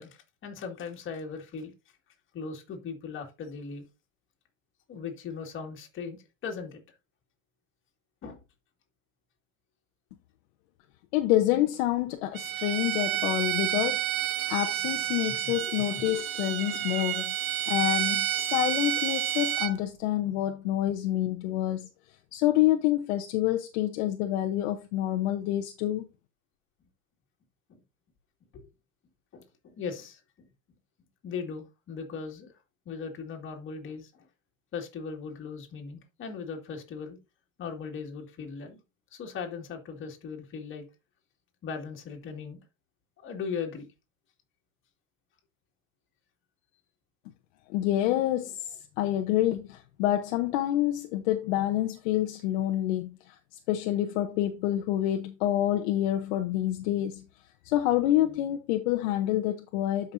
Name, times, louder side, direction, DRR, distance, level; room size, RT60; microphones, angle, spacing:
voice 1, 0.0-1.7 2.3-3.9 4.9-6.8 8.2-8.4 15.3-15.5 15.8-16.0 27.7-27.8 28.5-28.6 29.3-30.5 31.2-32.5 32.9-34.3 34.7-37.2 37.6-38.8 39.1-40.8 41.6-42.6 43.2-43.9, left 5 dB, 30° left, 2.2 m, -38 dB
voice 2, 11.1-14.0 14.5-17.3 17.7-21.9 22.3-26.1 47.7-53.4 53.7-57.2 57.6-60.1, left 13 dB, 55° left, 0.9 m, -27 dB
Bowed string instrument, 12.3-19.7, right 13 dB, 85° right, 0.8 m, -30 dB
12.0 x 5.5 x 2.7 m
hypercardioid pair, 120°, 40 cm